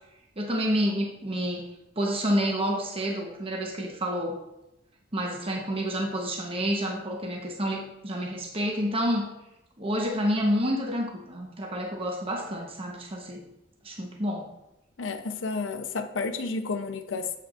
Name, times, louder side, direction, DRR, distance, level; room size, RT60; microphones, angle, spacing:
voice 1, 0.4-1.7 2.0-4.4 5.1-9.3 9.8-13.4 13.8-14.5, equal, 30° right, 0 dB, 1.0 m, -29 dB
voice 2, 15.0-17.4, left 4 dB, 80° left, 8 dB, 0.7 m, -31 dB
7.9 x 7.8 x 2.5 m, 0.89 s
head